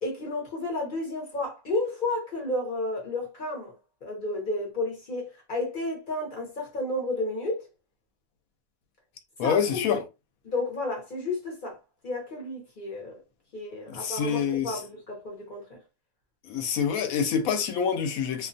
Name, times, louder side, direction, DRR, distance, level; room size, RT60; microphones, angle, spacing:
voice 1, 0.0-3.7 4.0-7.6 9.4-9.8 10.4-11.8 12.0-13.2 13.5-15.8, left 2 dB, 50° left, 0.6 m, -32 dB
voice 2, 9.4-10.0 13.9-14.8 16.4-18.5, left 7 dB, 70° left, 0.9 m, -26 dB
2.5 x 2.2 x 2.5 m
omnidirectional pair, 1.7 m